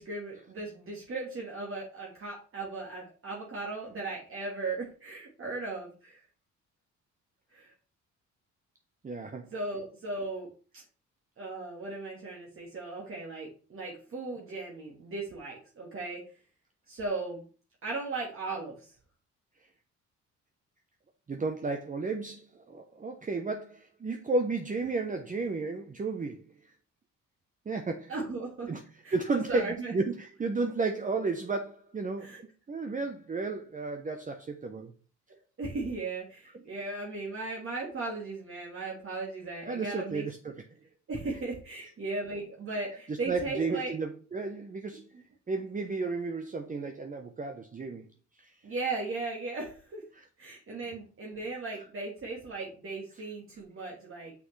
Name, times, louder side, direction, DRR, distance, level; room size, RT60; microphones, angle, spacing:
voice 1, 0.0-6.2 7.5-7.7 9.5-10.5 10.7-10.8 11.4-16.2 16.9-17.4 17.8-18.9 28.1-28.7 29.0-29.9 32.2-32.4 35.6-40.2 41.1-44.0 48.6-50.0 50.4-54.3, right 3 dB, 45° right, 1.7 m, -37 dB
voice 2, 9.0-9.5 21.3-26.4 27.7-28.1 28.7-28.8 29.1-32.4 32.7-34.9 36.5-36.7 39.7-40.5 43.1-45.0 45.5-48.0 48.4-48.5 50.1-50.2, right 3 dB, 25° right, 0.8 m, -33 dB
6.1 x 5.9 x 3.2 m
cardioid pair, 90°, 30 cm